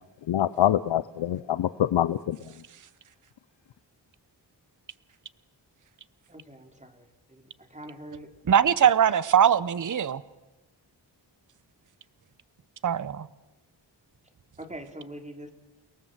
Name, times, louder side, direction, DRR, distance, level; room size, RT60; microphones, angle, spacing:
voice 1, 0.3-2.4, left 11 dB, 85° left, 15 dB, 0.7 m, -25 dB
voice 2, 6.3-7.0 7.3-7.4 7.7-8.3 14.6-15.5, right 1 dB, 15° right, 5 dB, 3.1 m, -43 dB
voice 3, 8.5-10.2 12.8-13.3, right 8 dB, 45° right, 17 dB, 0.8 m, -21 dB
30.0 x 19.0 x 7.4 m, 1.1 s
wide cardioid pair, 100°, 43 cm